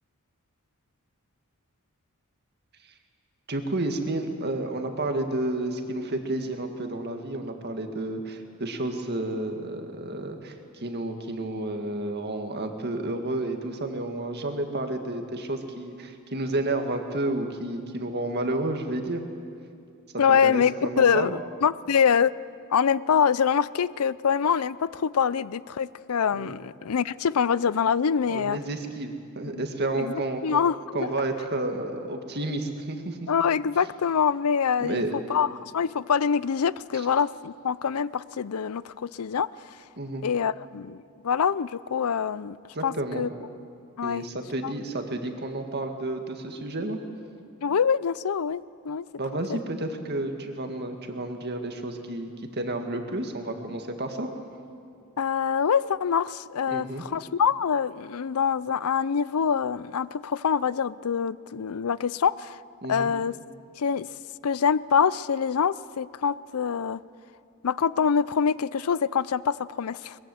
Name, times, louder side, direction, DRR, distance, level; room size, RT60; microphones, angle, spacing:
voice 1, 3.5-19.2 20.3-21.3 26.3-26.5 28.3-30.6 30.9-33.3 34.8-35.1 36.9-37.1 40.0-40.3 42.7-43.3 44.0-47.0 49.2-54.3 56.7-57.1 62.8-63.1, right 2 dB, 50° right, 5 dB, 2.0 m, -31 dB
voice 2, 20.2-21.3 21.6-22.3 22.7-28.6 29.5-29.6 30.0-30.1 30.4-31.1 33.3-35.0 35.3-35.5 35.7-39.5 40.2-42.6 42.8-43.3 44.0-44.3 44.6-44.7 47.6-49.1 55.2-62.6 62.9-63.3 63.8-64.1 64.4-67.0 67.6-70.2, left 7 dB, 80° left, 19 dB, 0.5 m, -25 dB
22.5 x 21.0 x 7.9 m, 2.4 s
head